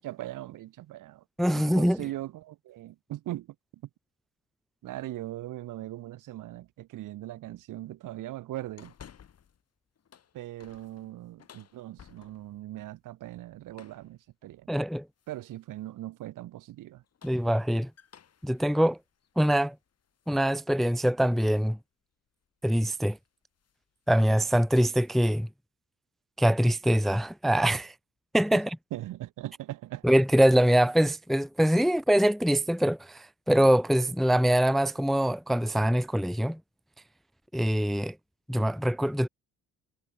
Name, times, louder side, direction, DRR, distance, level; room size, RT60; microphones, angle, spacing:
voice 1, 0.0-1.2 1.5-3.9 4.8-8.9 10.3-14.7 15.3-17.0 28.5-28.6 28.9-30.0, right 15 dB, 70° right, 5.6 m, -40 dB
voice 2, 1.4-2.0 14.7-15.0 17.2-17.9 18.4-19.0 19.4-19.7 20.3-21.8 22.6-23.2 24.1-25.5 26.4-27.9 28.3-28.8 30.0-36.6 37.5-38.1 38.5-39.3, equal, ahead, 0.6 m, -24 dB
sound 1, 8.8-9.6 10.0-12.6 13.7-14.1 15.2-15.6 16.9-20.4 20.8-20.9 22.5-22.7 23.0-23.3 23.6-23.8 24.2-25.2, left 8 dB, 50° left, 7.8 m, -56 dB
supercardioid pair, 75°, 32 cm